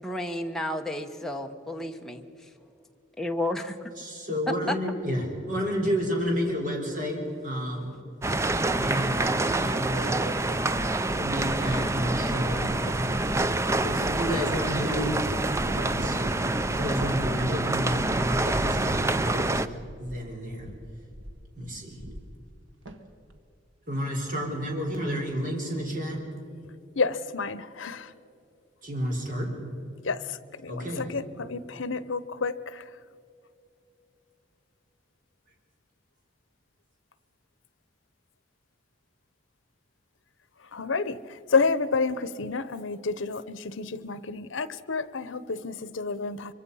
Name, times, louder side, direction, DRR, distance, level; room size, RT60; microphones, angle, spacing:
voice 1, 0.0-2.5 3.2-3.9 4.5-4.8, left 1 dB, ahead, 3 dB, 1.0 m, -32 dB
voice 2, 4.0-8.0 8.7-9.3 9.6-10.3 11.0-13.2 13.8-15.2 15.8-16.4 16.8-19.6 20.0-20.7 21.6-22.0 23.9-26.2 28.8-29.5 30.7-31.0, equal, 45° right, 1 dB, 4.2 m, -31 dB
sound 1, 8.2-19.7, right 2 dB, 15° right, 0.4 m, -27 dB
sound 2, 10.6-20.3 20.6-21.5 21.8-22.6 22.9-23.4, equal, 85° right, 1.6 m, -39 dB
voice 3, 26.9-28.1 30.0-32.9 40.7-46.5, left 4 dB, 85° left, 16 dB, 0.8 m, -30 dB
24.5 x 24.0 x 5.6 m, 2.6 s
head